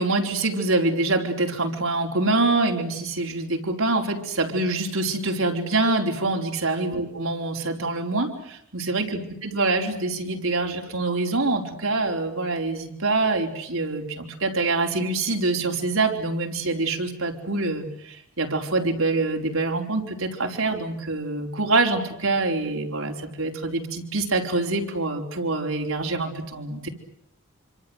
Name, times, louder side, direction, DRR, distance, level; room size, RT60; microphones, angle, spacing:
voice 1, 0.0-26.9, right 2 dB, 75° right, 3 dB, 4.4 m, -25 dB
27.0 x 26.0 x 8.0 m, 0.71 s
head